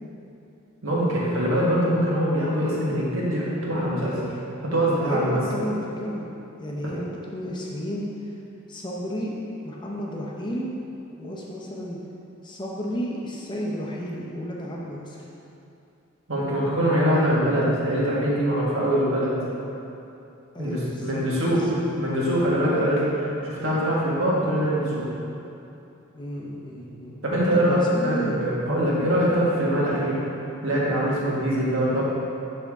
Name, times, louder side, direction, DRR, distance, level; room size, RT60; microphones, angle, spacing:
voice 1, 0.8-4.2 4.6-5.4 6.8-6.9 16.3-19.3 20.6-21.6 22.0-25.1 27.2-27.8 28.0-30.2 30.6-32.0, equal, 65° right, -6 dB, 1.6 m, -23 dB
voice 2, 5.0-6.3 6.6-8.1 8.7-9.3 9.6-10.7 11.2-12.0 12.4-15.2 20.5-21.8 26.1-28.4, equal, 20° left, -4 dB, 0.7 m, -32 dB
6.8 x 6.0 x 3.6 m, 2.8 s
head